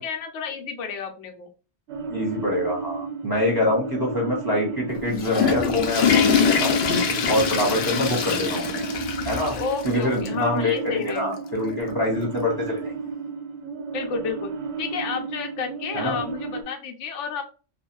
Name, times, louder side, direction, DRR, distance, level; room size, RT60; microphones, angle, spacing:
voice 1, 0.0-1.5 7.7-8.2 9.5-11.5 13.9-14.5 14.8-17.4, left 5 dB, 85° left, 4 dB, 0.9 m, -31 dB
sound 1, 1.9-16.6, right 5 dB, 70° right, 0.8 m, -33 dB
voice 2, 2.1-6.8 7.3-8.8 9.2-9.6 9.8-12.9 15.9-16.2, left 1 dB, 20° right, -1 dB, 0.8 m, -25 dB
Water / Toilet flush, 4.9-9.9 10.3-10.4 11.1-11.2 12.5-12.6, left 6 dB, 60° left, 0.6 m, -23 dB
2.4 x 2.2 x 2.9 m, 0.35 s
omnidirectional pair, 1.2 m